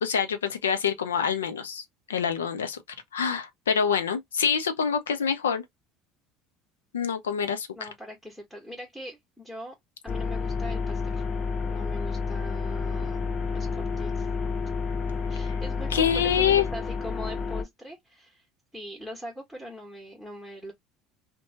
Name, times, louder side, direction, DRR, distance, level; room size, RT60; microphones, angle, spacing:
voice 1, 0.0-2.8 3.1-5.6 6.9-7.9 15.9-16.7, left 7 dB, 90° left, 0.5 m, -26 dB
voice 2, 7.7-9.7 10.0-11.2 11.7-13.2 13.5-14.3 15.3-18.5 18.7-20.7, equal, 5° left, 1.2 m, -41 dB
sound 1, 10.1-17.6, left 4 dB, 35° left, 0.7 m, -30 dB
2.8 x 2.2 x 2.7 m
hypercardioid pair, 70°, 0 cm